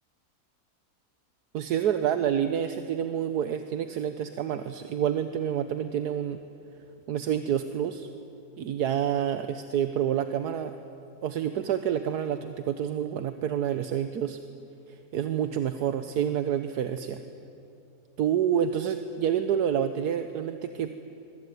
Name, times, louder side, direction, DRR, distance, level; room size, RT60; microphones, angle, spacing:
voice 1, 1.5-6.4 7.1-8.1 8.6-10.7 11.2-14.4 14.9-17.2 18.2-20.9, right 9 dB, 75° right, 9 dB, 1.4 m, -28 dB
25.5 x 22.5 x 9.5 m, 2.7 s
omnidirectional pair, 1.7 m